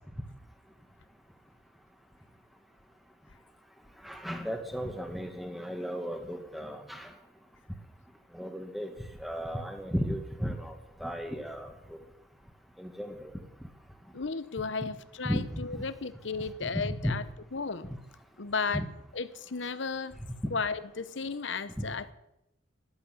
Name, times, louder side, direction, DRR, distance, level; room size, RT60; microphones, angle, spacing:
voice 1, 4.0-7.1 8.3-8.9 9.2-10.7 11.0-11.7 12.8-13.3 14.8-14.9 15.2-15.4 15.7-15.8 16.6-17.1 18.7-18.9 21.8-21.9, equal, ahead, 6 dB, 1.8 m, -34 dB
voice 2, 14.1-17.2 17.5-17.9 18.4-18.8 19.1-20.2 20.5-22.1, left 4 dB, 70° left, 14 dB, 0.9 m, -34 dB
13.5 x 11.5 x 8.6 m, 0.86 s
head